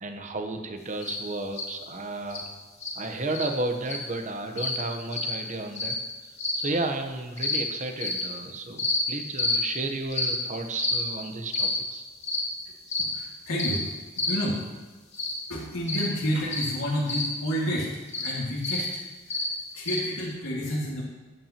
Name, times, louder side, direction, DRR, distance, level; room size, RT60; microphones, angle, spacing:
voice 1, 0.0-2.5 2.9-6.0 6.6-12.1, right 2 dB, 35° right, 5 dB, 0.9 m, -33 dB
sound 1, 1.0-1.2 1.5-1.7 2.3-2.4 2.8-2.9 3.3-3.4 3.8-4.0 4.6-4.8 5.1-5.3 5.7-5.9 6.4-6.6 7.4-7.6 8.0-8.2 8.8-9.0 9.4-9.6 10.1-10.3 10.8-11.0 11.5-11.7 12.2-12.4 12.9-13.1 13.6-13.8 14.2-14.4 15.1-15.3 15.9-16.1 16.5-16.7 17.1-17.2 18.1-18.3 18.6-18.8 19.3-19.4 19.9-20.0, left 2 dB, 30° left, 2.2 m, -28 dB
voice 2, 13.0-13.9 14.3-14.6 15.5-17.9 18.2-18.9 19.7-21.0, equal, 80° left, -5 dB, 2.0 m, -29 dB
14.0 x 8.7 x 2.9 m, 1.2 s
head